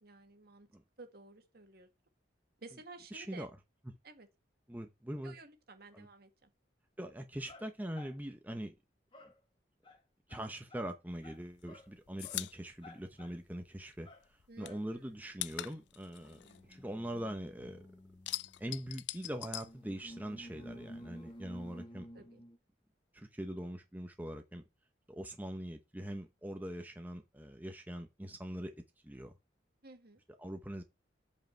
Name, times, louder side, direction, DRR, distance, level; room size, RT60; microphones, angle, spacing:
voice 1, 0.0-0.7 1.0-1.9 2.6-3.5 4.0-4.3 5.2-6.5 14.5-15.0 16.4-16.7 22.1-22.4 29.8-30.2, right 3 dB, 55° right, 1.7 m, -54 dB
voice 2, 3.1-3.5 4.7-5.3 5.9-6.1 7.0-8.7 10.3-14.1 14.6-16.4 16.7-17.8 18.6-22.1 23.1-24.6 25.1-28.7 29.0-29.3 30.4-30.8, right 1 dB, 10° right, 0.8 m, -42 dB
sound 1, 7.5-8.2 9.1-9.4 9.8-10.0 10.3-10.9 11.2-11.4 11.7-11.9 12.2-12.4 12.8-13.3 14.0-14.2 14.6-14.8 15.8-22.6, equal, 30° left, 1.7 m, -53 dB
sound 2, 11.2-14.0 14.2-17.5 17.8-20.5 20.7-21.8, left 16 dB, 70° left, 0.4 m, -43 dB
8.0 x 5.1 x 4.5 m
head